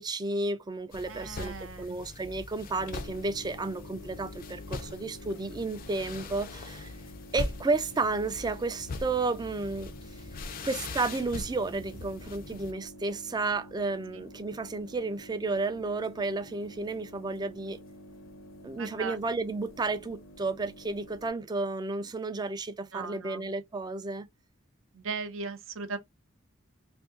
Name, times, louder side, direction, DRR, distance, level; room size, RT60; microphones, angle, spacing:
voice 1, 0.0-6.9 7.3-9.9 10.6-17.8 18.6-24.3, right 3 dB, 20° right, 0.4 m, -32 dB
sound 1, 0.9-12.7, left 3 dB, 45° left, 0.4 m, -41 dB
voice 2, 1.1-2.0 14.1-14.2 18.8-19.2 22.9-23.5 24.9-26.0, right 4 dB, 70° right, 0.6 m, -38 dB
sound 2, 2.8-21.3, equal, 70° left, 0.7 m, -49 dB
2.7 x 2.6 x 3.7 m
head